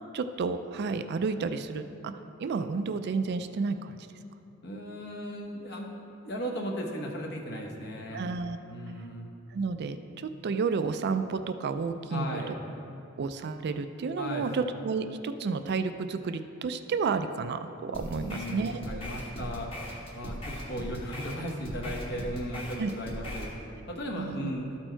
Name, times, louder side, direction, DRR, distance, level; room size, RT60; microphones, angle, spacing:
voice 1, 0.1-2.1 2.4-3.9 8.1-8.6 9.5-12.5 13.2-19.0 22.8-22.9 24.1-24.5, right 4 dB, 55° right, 9 dB, 0.4 m, -31 dB
voice 2, 4.6-5.9 6.2-8.3 8.7-9.3 12.1-12.6 14.2-14.5 18.1-19.7 20.1-23.5 23.9-24.7, equal, 55° left, 0 dB, 1.1 m, -36 dB
sound 1, 17.9-23.5, equal, 25° left, 1.2 m, -39 dB
13.0 x 4.4 x 4.5 m, 2.7 s
head